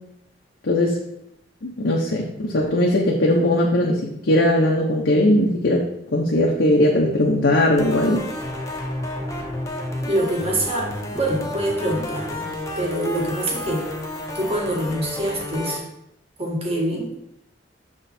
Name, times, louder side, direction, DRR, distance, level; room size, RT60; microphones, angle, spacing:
voice 1, 0.6-1.0 1.6-5.8 6.1-8.2, left 1 dB, 80° left, -2 dB, 0.8 m, -19 dB
sound 1, 7.8-15.8, left 1 dB, 15° left, 0.8 m, -31 dB
voice 2, 10.0-12.5 12.7-13.8 14.3-15.8 16.4-17.1, right 1 dB, 35° right, -1 dB, 1.4 m, -25 dB
7.0 x 3.7 x 4.2 m, 0.80 s
head